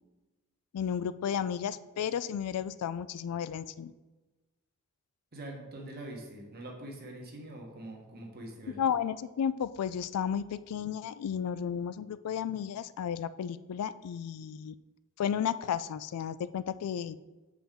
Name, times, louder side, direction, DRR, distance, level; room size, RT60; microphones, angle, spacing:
voice 1, 0.7-3.9 8.8-14.8 15.2-17.2, left 8 dB, 90° left, 16 dB, 0.3 m, -33 dB
voice 2, 5.3-8.8, right 1 dB, 45° right, 0 dB, 1.3 m, -44 dB
7.0 x 4.9 x 3.7 m, 1.2 s
head